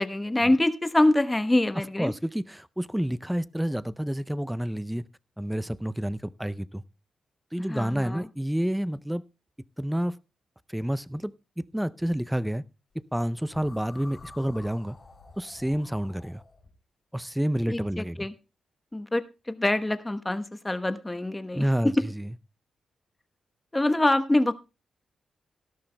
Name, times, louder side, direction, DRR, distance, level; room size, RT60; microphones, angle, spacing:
voice 1, 0.0-2.1 7.7-8.2 17.7-18.3 18.9-21.6 23.7-24.5, left 1 dB, 15° left, 9 dB, 1.0 m, -25 dB
voice 2, 2.0-5.0 5.4-6.8 7.5-9.2 9.8-10.2 10.7-12.6 13.1-15.0 15.4-16.4 17.1-18.3 21.5-22.3, equal, 5° right, 17 dB, 0.5 m, -29 dB
sound 1, 13.5-16.7, left 3 dB, 40° left, 3.0 m, -49 dB
17.5 x 12.5 x 2.2 m, 0.30 s
cardioid pair, 80°, 0 cm